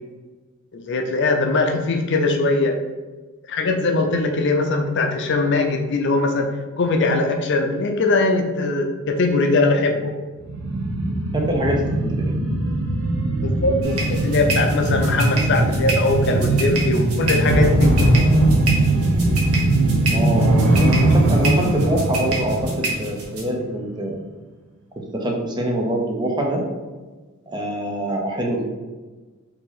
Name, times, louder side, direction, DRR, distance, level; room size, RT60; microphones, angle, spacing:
voice 1, 0.7-2.7 3.5-6.5 6.8-10.1 13.4-17.9, left 3 dB, 55° left, 4 dB, 0.5 m, -21 dB
sound 1, 10.4-23.7 24.0-24.1, right 2 dB, 65° right, 0.7 m, -20 dB
voice 2, 11.3-12.4 20.1-24.2 25.1-26.6 27.5-28.6, right 1 dB, 20° right, 0 dB, 0.6 m, -24 dB
sound 2, 13.8-23.4, right 1 dB, 85° right, 1.1 m, -25 dB
4.7 x 2.8 x 4.0 m, 1.3 s
head